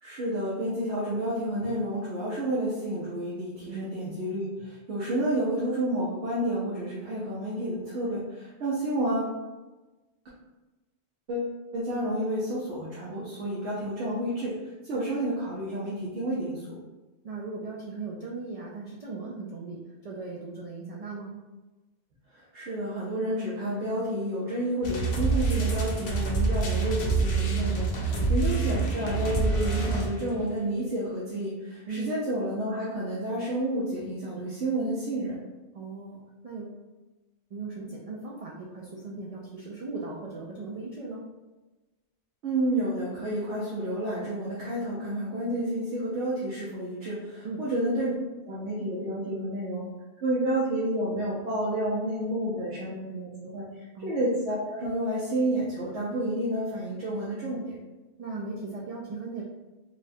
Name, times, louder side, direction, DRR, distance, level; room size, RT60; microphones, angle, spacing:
voice 1, 0.0-9.3 11.3-16.8 22.3-35.4 42.4-48.1 48.5-49.9 50.2-57.7, right 1 dB, 80° right, -7 dB, 1.1 m, -30 dB
voice 2, 3.7-4.1 11.9-12.1 17.2-21.4 28.0-28.3 29.2-29.3 31.9-32.2 35.7-36.8 37.5-41.3 47.4-47.7 54.0-54.2 58.2-59.4, right 3 dB, 60° right, -3 dB, 0.3 m, -38 dB
sound 1, 24.8-30.4, right 3 dB, 70° left, 0.9 m, -26 dB
4.2 x 2.2 x 2.6 m, 1.1 s
omnidirectional pair, 1.2 m